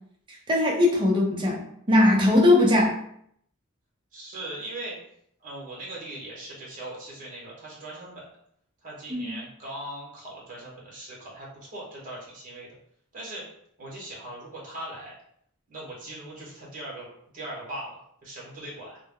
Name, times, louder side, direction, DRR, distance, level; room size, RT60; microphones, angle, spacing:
voice 1, 0.5-1.6 1.9-3.0 9.1-9.3, left 2 dB, 20° right, -1 dB, 0.5 m, -20 dB
voice 2, 4.1-5.0 5.4-8.2 8.8-12.7 13.1-13.4 13.8-15.1 15.7-17.1 17.3-19.0, right 1 dB, 40° right, -5 dB, 0.9 m, -39 dB
2.1 x 2.1 x 3.5 m, 0.69 s
head